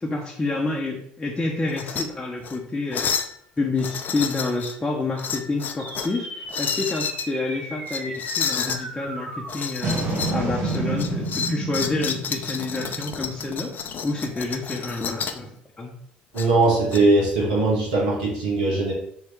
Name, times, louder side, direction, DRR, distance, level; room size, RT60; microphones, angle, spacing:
voice 1, 0.0-3.1 3.6-13.7 14.0-15.5 15.8-15.9, left 3 dB, 15° left, -2 dB, 0.8 m, -28 dB
sound 1, 1.7-2.1 2.4-2.6 2.9-3.3 3.8-4.8 5.2-6.2 6.5-7.3 7.9-8.8 9.5-10.4 10.7-15.4 16.4-17.0, left 7 dB, 45° left, 0.5 m, -30 dB
sound 2, 5.8-14.4, right 2 dB, 65° right, 1.5 m, -31 dB
voice 2, 16.3-18.9, right 2 dB, 80° right, -5 dB, 1.4 m, -20 dB
3.6 x 3.2 x 4.5 m, 0.70 s
hypercardioid pair, 65°, 4 cm